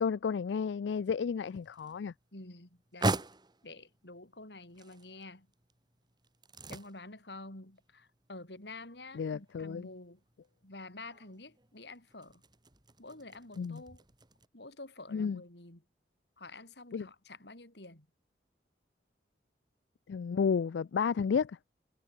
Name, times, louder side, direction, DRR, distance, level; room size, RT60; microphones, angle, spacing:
voice 1, 0.0-2.1 9.1-9.9 13.6-13.8 15.1-15.4 16.9-17.1 20.1-21.6, left 6 dB, 90° left, 0.4 m, -32 dB
sound 1, 1.2-14.5, right 2 dB, 25° right, 2.4 m, -42 dB
voice 2, 2.3-3.3 3.6-5.5 6.7-10.2 10.6-12.4 13.0-14.0 14.5-15.8 16.4-18.1, left 2 dB, 70° left, 4.6 m, -49 dB
head